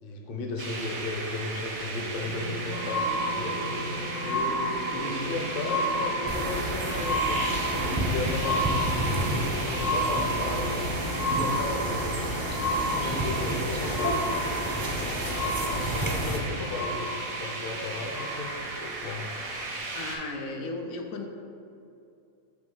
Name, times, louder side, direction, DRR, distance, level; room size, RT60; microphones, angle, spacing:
voice 1, 0.0-3.6 4.2-8.8 9.3-12.0 12.6-14.5 15.1-17.1 17.4-19.2, left 3 dB, 50° left, 1 dB, 0.8 m, -35 dB
sound 1, 0.6-20.2, right 2 dB, 85° right, 1.5 m, -36 dB
sound 2, 2.0-18.9 19.6-19.7, equal, 65° left, 1.2 m, -31 dB
sound 3, 6.3-16.4, equal, 25° right, 0.5 m, -31 dB
voice 2, 19.9-21.3, left 2 dB, 85° left, 2 dB, 1.1 m, -36 dB
6.3 x 3.1 x 5.3 m, 2.6 s
omnidirectional pair, 1.4 m